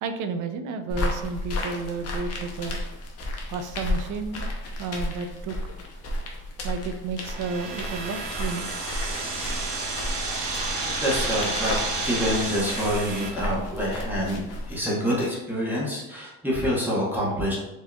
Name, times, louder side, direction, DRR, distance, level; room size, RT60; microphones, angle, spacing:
voice 1, 0.0-2.8 3.5-4.5 4.8-5.6 6.6-8.7, right 4 dB, 50° right, 8 dB, 0.4 m, -32 dB
sound 1, 0.9-14.8, left 1 dB, 40° left, 0.7 m, -33 dB
sound 2, 7.2-13.3, right 3 dB, 70° right, 1.0 m, -31 dB
voice 2, 11.0-11.8 12.0-17.6, equal, 5° right, -7 dB, 0.9 m, -26 dB
4.4 x 2.8 x 2.2 m, 0.97 s
cardioid pair, 130°, 39 cm